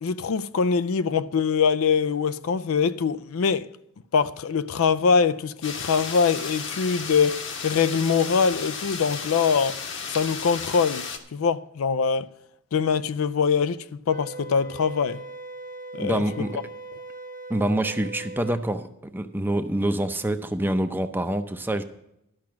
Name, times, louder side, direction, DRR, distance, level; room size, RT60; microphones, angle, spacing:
voice 1, 0.0-3.7 4.1-9.8 10.1-12.3 12.7-15.2 15.9-16.4, left 6 dB, 80° left, 0.4 m, -23 dB
sound 1, 5.6-11.2, left 5 dB, 55° left, 1.2 m, -34 dB
Wind instrument woodwind instrument, 14.1-18.6, right 2 dB, 40° right, 1.1 m, -40 dB
voice 2, 16.0-16.6 17.5-21.8, right 1 dB, 10° right, 0.6 m, -26 dB
12.0 x 5.9 x 7.4 m
head